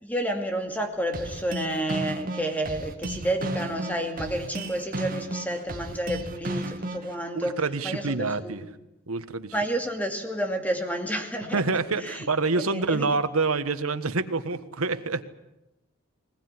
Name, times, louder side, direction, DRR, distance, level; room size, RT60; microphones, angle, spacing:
voice 1, 0.0-8.6 9.5-11.6 12.0-12.3 12.5-13.1, right 1 dB, 5° left, 4 dB, 2.5 m, -30 dB
sound 1, 1.1-7.1, right 1 dB, 40° right, 2.3 m, -33 dB
voice 2, 7.3-8.6 9.1-9.5 11.5-15.2, right 3 dB, 85° right, 11 dB, 1.4 m, -27 dB
21.0 x 20.5 x 9.8 m, 0.92 s
head